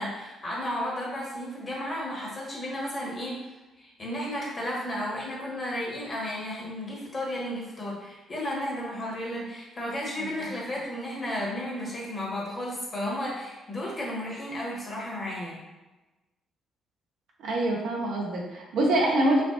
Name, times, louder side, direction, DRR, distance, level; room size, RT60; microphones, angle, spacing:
voice 1, 0.0-3.4 3.8-15.6, left 1 dB, 35° left, -5 dB, 1.5 m, -33 dB
voice 2, 17.4-19.4, right 1 dB, 60° right, -3 dB, 0.8 m, -25 dB
4.9 x 2.3 x 2.5 m, 1.1 s
figure-of-eight pair, 40°, 0 cm